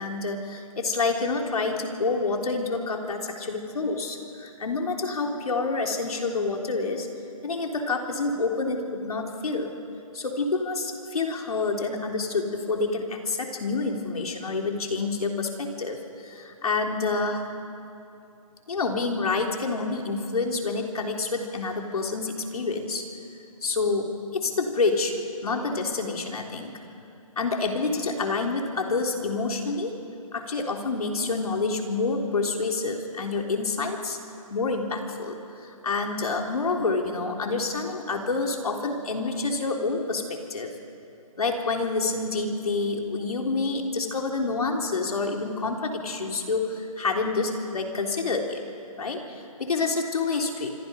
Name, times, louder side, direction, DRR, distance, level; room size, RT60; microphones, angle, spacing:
voice 1, 0.0-7.1 7.4-9.7 10.1-17.4 18.7-23.0 23.6-25.1 25.4-26.7 27.4-29.9 30.3-34.2 34.5-35.3 35.8-40.7 41.4-48.6 49.0-50.7, left 3 dB, 85° left, 2 dB, 3.7 m, -28 dB
25.5 x 25.5 x 5.4 m, 2.6 s
hypercardioid pair, 165°, 19 cm